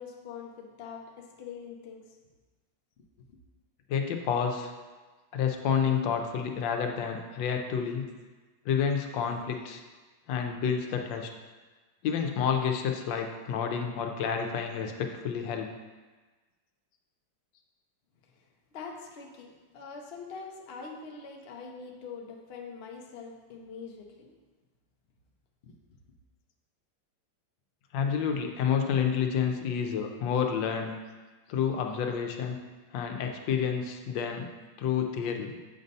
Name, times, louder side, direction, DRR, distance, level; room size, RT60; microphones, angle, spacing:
voice 1, 0.0-2.0 18.7-24.3 25.6-25.7, left 5 dB, 65° left, 1 dB, 0.6 m, -43 dB
voice 2, 3.9-4.7 5.3-8.1 8.6-9.8 10.3-11.3 12.0-15.7 27.9-30.9 31.5-32.6 32.9-34.5 34.8-35.6, left 7 dB, 85° left, 4 dB, 1.4 m, -29 dB
7.2 x 2.7 x 5.3 m, 1.3 s
omnidirectional pair, 2.0 m